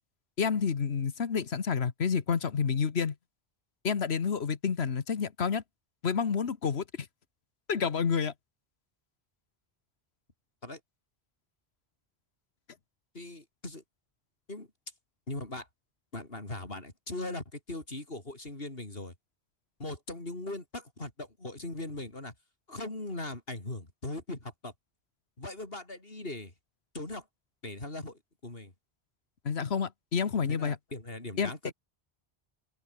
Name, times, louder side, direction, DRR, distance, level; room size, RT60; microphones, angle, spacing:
voice 1, 0.4-3.1 3.8-5.6 6.0-7.1 7.7-8.3 29.4-30.8 31.4-31.5, left 6 dB, 85° left, 1.5 m, -29 dB
voice 2, 13.1-13.8 14.5-14.7 15.3-15.7 16.1-19.1 19.8-22.3 22.7-24.7 25.4-26.5 26.9-27.3 27.6-28.7 30.4-31.7, left 2 dB, 65° left, 5.0 m, -39 dB
open air
omnidirectional pair, 1.0 m